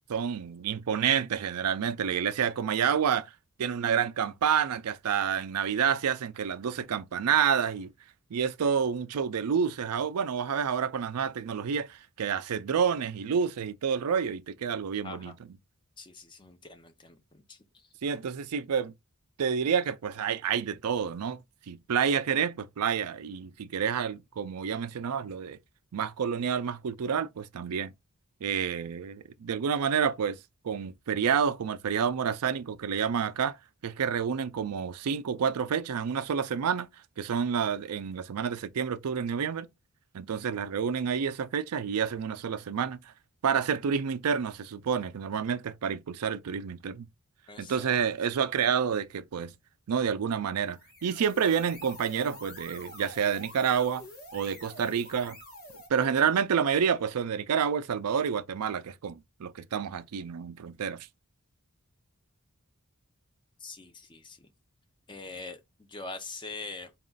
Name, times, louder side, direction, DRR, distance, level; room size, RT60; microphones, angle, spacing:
voice 1, 0.1-3.3 3.6-7.9 8.3-15.4 18.0-18.9 19.4-21.4 21.7-25.6 25.9-27.9 28.4-30.4 30.6-33.6 33.8-36.9 37.2-39.7 40.1-43.0 43.4-47.1 47.6-49.6 49.9-54.0 54.3-55.4 55.9-61.1, right 7 dB, 85° right, 0.4 m, -29 dB
voice 2, 15.0-15.3 16.0-17.6 47.5-47.9 63.6-64.5 65.1-65.6 65.9-66.9, left 3 dB, 20° left, 0.6 m, -43 dB
sound 1, 50.6-55.9, left 1 dB, 45° left, 1.3 m, -47 dB
4.0 x 2.4 x 3.8 m
head